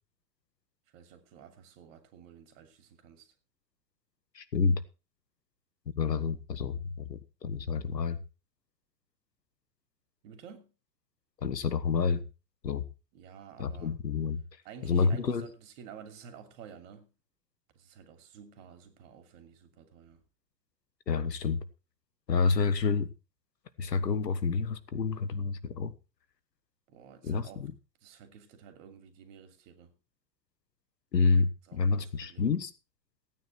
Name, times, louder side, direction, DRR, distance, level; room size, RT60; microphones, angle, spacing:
voice 1, 0.9-3.3 10.2-10.7 13.1-13.9 14.6-17.1 17.7-20.2 26.9-27.7 28.0-29.9 31.6-32.5, right 7 dB, 50° right, 3.0 m, -51 dB
voice 2, 4.3-4.8 6.0-8.2 11.4-12.2 12.6-12.8 13.6-14.4 14.8-15.5 21.1-21.6 22.3-23.1 23.8-25.9 27.2-27.7 31.1-32.7, left 4 dB, 80° left, 1.5 m, -28 dB
16.0 x 9.3 x 4.5 m
figure-of-eight pair, 100°, 49 cm